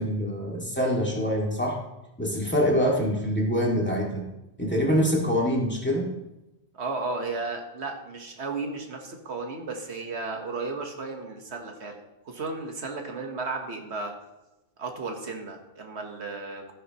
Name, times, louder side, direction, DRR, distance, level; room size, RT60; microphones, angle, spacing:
voice 1, 0.0-1.8 2.2-4.2 4.6-6.1, equal, 10° left, -3 dB, 2.1 m, -25 dB
voice 2, 6.7-14.1 14.8-16.7, right 3 dB, 80° right, 3 dB, 1.6 m, -34 dB
14.0 x 9.7 x 3.0 m, 0.98 s
omnidirectional pair, 1.1 m